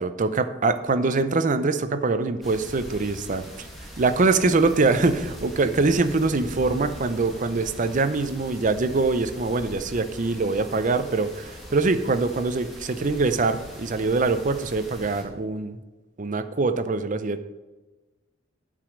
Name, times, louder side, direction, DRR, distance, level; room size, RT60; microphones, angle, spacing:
voice 1, 0.0-3.7 4.0-15.8 16.2-17.4, right 3 dB, 40° right, 10 dB, 0.6 m, -23 dB
sound 1, 2.4-15.2, equal, ahead, 2.0 m, -41 dB
9.0 x 5.1 x 6.3 m, 1.2 s
head